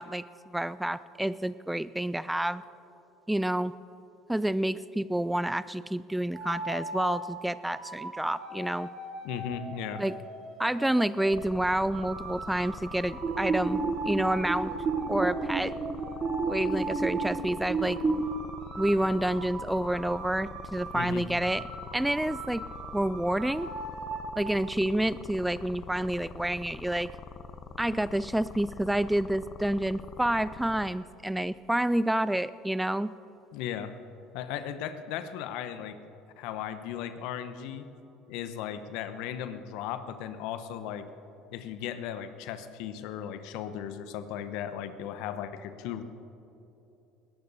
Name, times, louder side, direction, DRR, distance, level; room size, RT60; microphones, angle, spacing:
voice 1, 0.0-2.6 3.3-3.7 4.3-8.9 10.0-10.2 10.6-14.7 15.1-15.7 16.5-18.2 18.8-21.6 21.9-22.6 22.9-23.7 24.4-27.1 27.8-33.1, right 1 dB, 5° right, 16 dB, 0.4 m, -29 dB
sound 1, 6.3-7.2 7.7-11.4 11.9-17.2 17.7-21.0 21.4-24.3, right 2 dB, 50° right, 3.9 m, -40 dB
voice 2, 9.2-10.0 20.9-21.2 33.5-33.9 34.3-36.0 36.4-37.8 38.3-41.1 41.5-46.0, left 9 dB, 65° left, 11 dB, 0.9 m, -36 dB
sound 2, 11.3-30.9, left 5 dB, 40° left, 1.0 m, -44 dB
sound 3, 13.2-18.2, right 4 dB, 30° right, 1.0 m, -31 dB
21.5 x 18.5 x 2.7 m, 3.0 s
hypercardioid pair, 65°, 0 cm